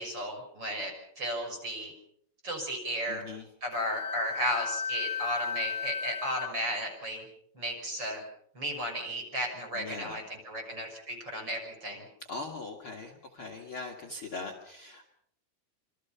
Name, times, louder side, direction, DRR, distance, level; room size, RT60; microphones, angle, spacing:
voice 1, 0.0-1.9 2.4-3.2 3.6-7.3 7.5-8.2 8.5-12.0, equal, 20° right, 4 dB, 6.2 m, -34 dB
voice 2, 3.1-3.5 9.7-10.2 12.3-15.1, left 3 dB, 60° left, 1 dB, 1.3 m, -41 dB
Wind instrument woodwind instrument, 3.7-6.5, left 6 dB, 40° left, 2.3 m, -34 dB
26.5 x 26.0 x 5.7 m, 0.70 s
omnidirectional pair, 5.7 m